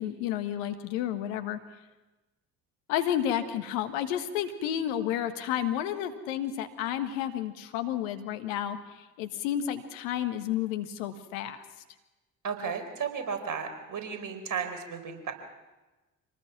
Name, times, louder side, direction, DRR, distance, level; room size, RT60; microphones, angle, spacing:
voice 1, 0.0-1.6 2.9-11.6, left 10 dB, 75° left, 8 dB, 1.7 m, -31 dB
voice 2, 12.4-15.3, right 6 dB, 50° right, 7 dB, 4.5 m, -34 dB
26.5 x 19.5 x 6.0 m, 1.1 s
hypercardioid pair, 50°, 40 cm